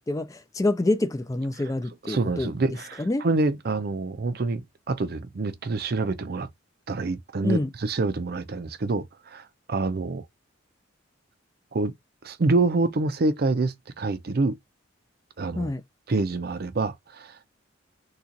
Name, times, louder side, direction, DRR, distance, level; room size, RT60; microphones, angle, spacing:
voice 1, 0.1-2.5 3.0-3.3 7.4-7.7 15.6-15.8, left 2 dB, 15° left, 0.3 m, -26 dB
voice 2, 2.0-6.5 6.9-9.4 9.7-10.2 11.7-11.9 12.2-14.6 15.4-15.7 16.1-17.5, right 3 dB, 50° right, 0.5 m, -26 dB
3.8 x 2.4 x 2.8 m
head